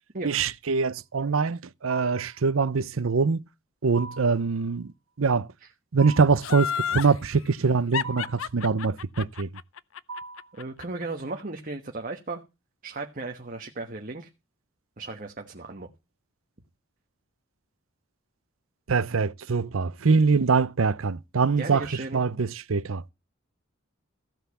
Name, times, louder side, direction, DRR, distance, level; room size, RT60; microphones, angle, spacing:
voice 1, 0.2-3.4 3.8-5.5 5.9-9.5 18.9-23.0, right 4 dB, 85° right, 0.7 m, -24 dB
sound 1, 1.9-2.4 3.9-4.4 6.0-6.5 8.0-8.5 10.1-10.6, right 3 dB, 65° right, 1.8 m, -40 dB
Laughter, 6.4-7.1 7.9-11.0 11.4-11.5, left 8 dB, 85° left, 0.6 m, -30 dB
voice 2, 10.6-12.4 12.8-14.3 15.0-15.9 21.6-22.2, right 3 dB, 40° right, 1.3 m, -35 dB
15.0 x 5.7 x 8.2 m
head